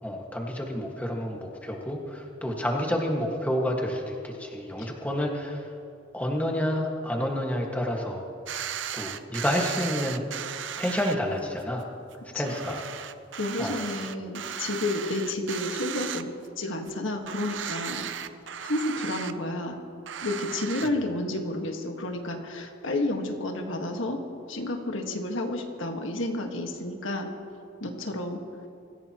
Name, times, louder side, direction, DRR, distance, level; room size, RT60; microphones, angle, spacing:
voice 1, 0.0-5.6 6.1-8.3 8.9-10.2 10.5-11.9 12.3-12.8 13.6-13.8, equal, 5° left, 0 dB, 1.7 m, -29 dB
sound 1, 8.5-11.1 11.6-11.7 12.1-12.2 12.4-16.6 16.9-17.0 17.2-19.3 20.1-20.9, right 8 dB, 70° right, 0.6 m, -36 dB
voice 2, 13.4-18.1 18.6-19.8 20.2-24.2 24.5-27.3 27.8-28.4, left 2 dB, 80° left, 3 dB, 1.6 m, -31 dB
24.5 x 16.0 x 3.0 m, 2.5 s
head